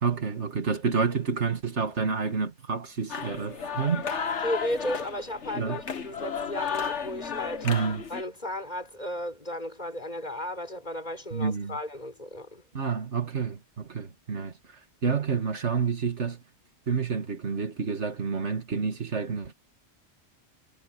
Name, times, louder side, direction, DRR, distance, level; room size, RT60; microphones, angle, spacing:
voice 1, 0.0-4.0 5.5-5.8 7.6-8.0 11.3-11.8 12.7-14.5 15.0-16.4 16.9-19.5, right 5 dB, 85° right, 2.4 m, -29 dB
sound 1, 3.1-8.2, left 6 dB, 85° left, 1.8 m, -33 dB
voice 2, 4.4-7.7 8.1-12.6, left 1 dB, 40° left, 6.1 m, -34 dB
omnidirectional pair, 1.2 m